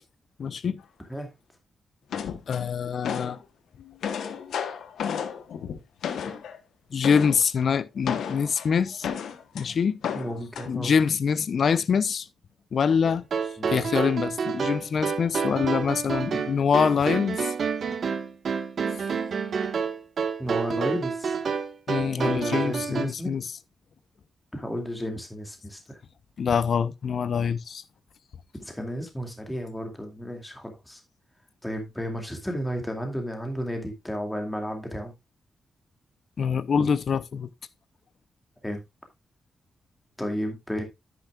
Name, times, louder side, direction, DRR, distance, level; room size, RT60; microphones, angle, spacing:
voice 1, 0.4-0.8 2.5-3.4 6.9-9.1 9.5-10.0 10.7-12.3 12.7-13.2 13.7-17.5 21.9-23.5 26.4-27.8 36.4-37.5, left 6 dB, 60° left, 0.7 m, -25 dB
sound 1, 2.1-3.4 3.8-6.6 7.0-7.4 8.0-9.6 10.0-10.7, left 8 dB, 90° left, 1.0 m, -32 dB
voice 2, 10.1-10.9 13.6-13.8 20.4-21.4 22.2-23.3 24.5-26.0 28.6-31.0 31.6-35.1 36.8-36.9 38.6-38.8 40.2-40.8, equal, 10° left, 2.4 m, -33 dB
sound 2, 13.1-23.1, right 6 dB, 60° right, 1.5 m, -29 dB
10.0 x 9.5 x 2.4 m
cardioid pair, 105°, 0 cm